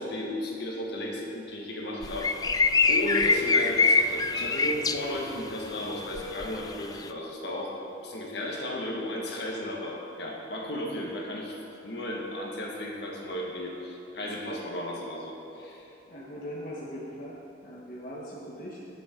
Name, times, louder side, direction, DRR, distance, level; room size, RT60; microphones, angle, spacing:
voice 1, 0.0-2.4 2.9-11.6 11.8-15.8, left 1 dB, 60° left, -1 dB, 1.8 m, -34 dB
sound 1, 2.0-5.0 6.2-6.6, left 4 dB, 20° left, 0.3 m, -24 dB
voice 2, 16.1-18.8, equal, 45° left, -6 dB, 1.4 m, -40 dB
19.5 x 7.2 x 3.9 m, 2.8 s
head